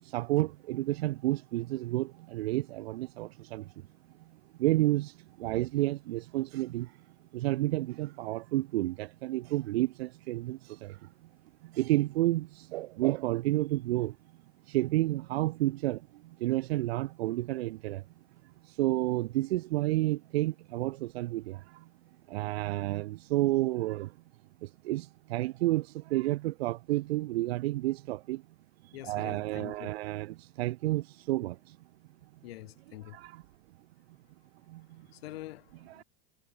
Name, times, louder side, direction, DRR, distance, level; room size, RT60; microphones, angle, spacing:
voice 1, 0.0-3.9 4.6-7.0 7.3-11.1 11.6-14.2 14.7-18.0 18.6-21.9 22.3-24.1 24.6-28.4 28.8-31.8 33.1-33.4 34.7-35.1 36.0-36.1, right 17 dB, 85° right, 0.6 m, -31 dB
voice 2, 28.9-29.9 32.4-33.2 35.0-36.0, left 16 dB, 80° left, 2.9 m, -45 dB
supercardioid pair, 145°, 30 cm